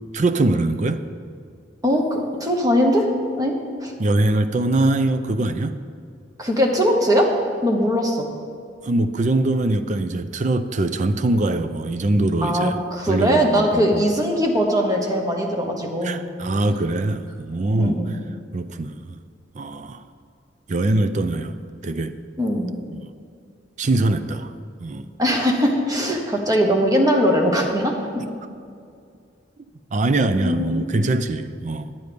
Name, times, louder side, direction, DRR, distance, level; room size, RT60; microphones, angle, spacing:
voice 1, 0.1-1.0 4.0-5.7 8.8-12.8 13.0-14.0 16.0-18.0 18.5-19.2 19.5-20.0 20.7-21.6 21.8-22.1 22.9-23.1 23.8-24.5 24.8-25.1 29.9-31.9, right 2 dB, 40° right, 10 dB, 0.5 m, -22 dB
voice 2, 1.8-3.1 3.4-3.9 6.4-7.3 7.6-8.2 12.4-16.2 17.8-18.2 22.4-22.7 25.2-27.9 30.4-30.8, equal, 20° right, 1 dB, 1.2 m, -20 dB
11.0 x 8.1 x 5.2 m, 2.3 s
head